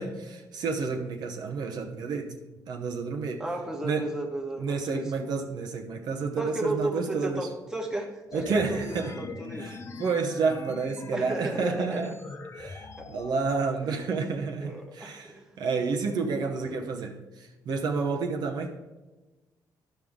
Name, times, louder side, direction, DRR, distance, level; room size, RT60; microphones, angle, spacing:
voice 1, 0.0-2.4 2.7-3.4 3.8-4.1 4.6-7.5 8.3-9.2 9.6-12.2 12.6-18.8, right 4 dB, 65° right, 0.9 m, -30 dB
voice 2, 3.4-5.3 6.4-9.7 11.1-12.1 13.0-13.1 13.8-14.0 14.6-15.5 16.6-16.8, right 2 dB, 5° right, 1.3 m, -34 dB
sound 1, 8.3-13.3, left 4 dB, 35° left, 0.7 m, -41 dB
12.5 x 5.3 x 3.6 m
cardioid pair, 130°, 8 cm